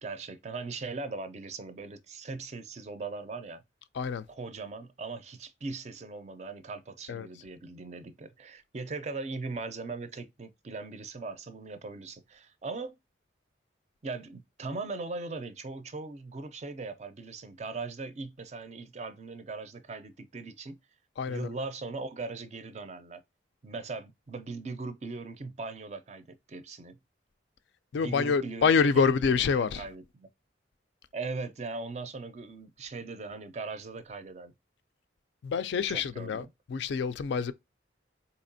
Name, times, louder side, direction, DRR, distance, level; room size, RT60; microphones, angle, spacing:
voice 1, 0.0-3.6 4.3-13.0 14.0-20.8 21.3-23.2 23.6-27.0 27.9-30.3 31.1-34.5 35.9-36.5, right 3 dB, 35° right, 0.4 m, -39 dB
voice 2, 21.2-21.5 27.9-29.9 35.4-37.5, left 5 dB, 70° left, 0.3 m, -27 dB
4.1 x 2.9 x 2.6 m
head